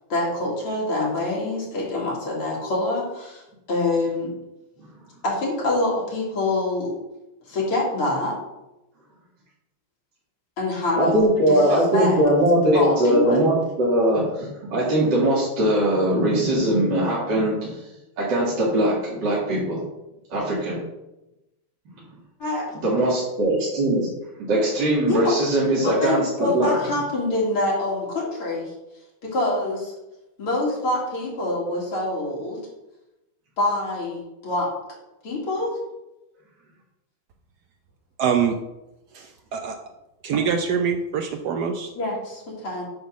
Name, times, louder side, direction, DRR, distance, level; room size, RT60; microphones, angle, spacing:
voice 1, 0.1-3.4 3.7-4.3 5.2-6.9 7.5-8.4 10.6-11.1 11.5-11.6 11.9-12.2 12.7-13.5 22.4-22.6 25.1-25.4 25.8-28.7 29.2-29.9 30.4-32.6 33.6-34.7 35.2-35.8 42.0-42.8, left 2 dB, 85° left, -5 dB, 3.1 m, -25 dB
voice 2, 11.0-17.7 18.2-19.8 20.3-20.8 22.7-24.1 24.4-26.7, right 1 dB, 55° right, -7 dB, 2.5 m, -21 dB
voice 3, 38.2-38.6 39.1-39.8 40.2-41.9, right 7 dB, 75° right, 5 dB, 0.9 m, -24 dB
8.0 x 3.7 x 6.2 m, 0.95 s
omnidirectional pair, 2.3 m